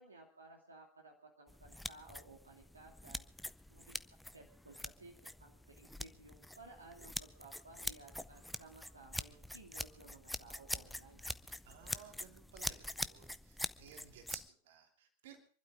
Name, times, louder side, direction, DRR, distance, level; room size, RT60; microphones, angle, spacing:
voice 1, 0.0-3.3 3.7-4.0 4.3-11.3, right 2 dB, 75° right, 1 dB, 2.5 m, -57 dB
sound 1, 1.5-14.5, left 1 dB, ahead, 0.6 m, -45 dB
voice 2, 11.6-15.4, right 8 dB, 55° right, 4 dB, 2.9 m, -57 dB
26.5 x 12.0 x 3.7 m, 0.43 s
figure-of-eight pair, 90°, 0 cm